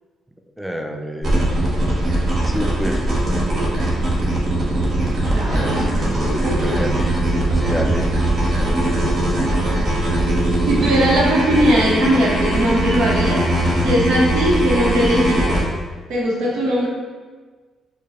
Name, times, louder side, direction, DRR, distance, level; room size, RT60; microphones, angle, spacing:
voice 1, 0.6-1.5 2.4-3.0 6.4-7.2 7.5-8.5, equal, 5° right, 3 dB, 0.3 m, -28 dB
sound 1, 1.2-15.6, right 1 dB, 50° right, 1.0 m, -20 dB
voice 2, 5.3-5.9 6.2-6.9 8.6-8.9 10.6-13.5 13.8-15.6 16.1-16.9, equal, 90° right, -4 dB, 0.9 m, -20 dB
4.6 x 2.3 x 2.9 m, 1.4 s
cardioid pair, 90°, 0 cm